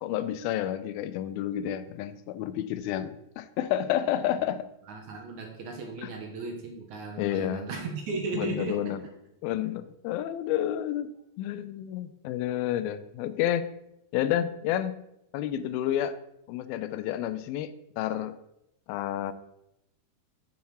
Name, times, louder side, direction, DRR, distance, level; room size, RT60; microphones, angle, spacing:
voice 1, 0.0-4.7 6.0-6.1 7.2-7.7 8.3-9.0 9.4-11.1 11.4-13.7 14.1-15.0 15.3-16.1 16.5-18.4 18.9-19.3, left 11 dB, 85° left, 12 dB, 2.4 m, -30 dB
voice 2, 4.9-8.8, right 3 dB, 65° right, 1 dB, 2.3 m, -35 dB
7.2 x 7.1 x 4.8 m, 0.81 s
omnidirectional pair, 4.2 m